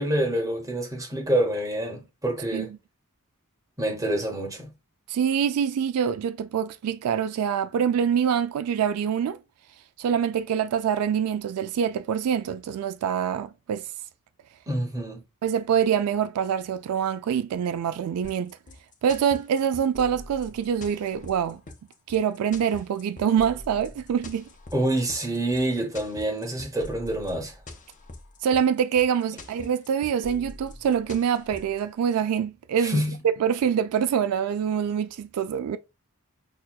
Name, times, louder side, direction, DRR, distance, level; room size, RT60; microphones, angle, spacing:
voice 1, 0.0-2.7 3.8-4.7 14.7-15.2 24.7-27.5 32.8-33.2, right 1 dB, 15° right, 0.9 m, -27 dB
voice 2, 5.1-9.4 10.0-13.9 15.4-18.6 19.0-21.6 22.1-24.5 28.4-35.8, right 8 dB, 80° right, 0.3 m, -25 dB
sound 1, 18.2-31.8, left 2 dB, 35° left, 0.7 m, -44 dB
6.1 x 2.2 x 2.3 m
head